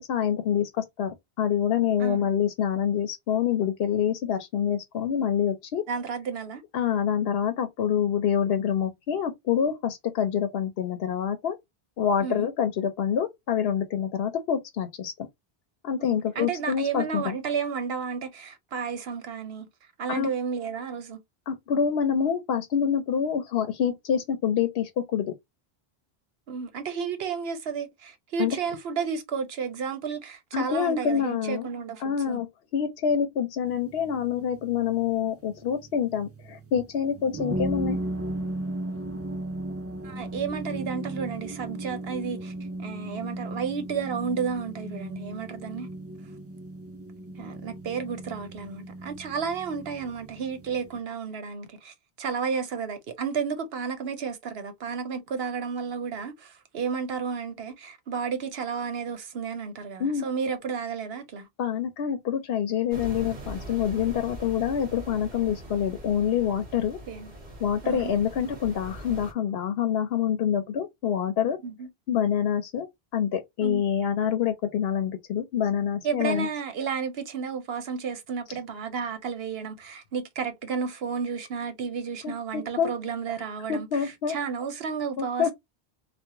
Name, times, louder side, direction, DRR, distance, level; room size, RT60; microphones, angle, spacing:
voice 1, 0.0-5.8 6.7-11.6 12.0-15.1 15.8-17.4 20.1-20.3 21.5-25.3 28.4-28.6 30.5-31.7 32.0-32.5 32.7-38.0 60.0-60.3 61.6-67.0 67.6-71.6 72.1-72.9 73.1-76.5 82.2-82.9 83.7-84.3 85.2-85.5, left 8 dB, 75° left, 0.8 m, -26 dB
voice 2, 5.9-6.6 12.2-12.5 16.0-19.7 20.0-21.2 26.5-32.4 40.0-42.5 42.8-45.9 47.4-61.5 67.1-67.3 67.8-68.1 71.6-71.9 73.6-73.8 76.0-85.5, right 6 dB, 70° right, 1.0 m, -32 dB
sound 1, 33.7-51.0, right 1 dB, 20° right, 0.5 m, -36 dB
sound 2, 62.9-69.3, right 1 dB, 45° right, 1.2 m, -41 dB
3.4 x 2.2 x 2.8 m
omnidirectional pair, 1.1 m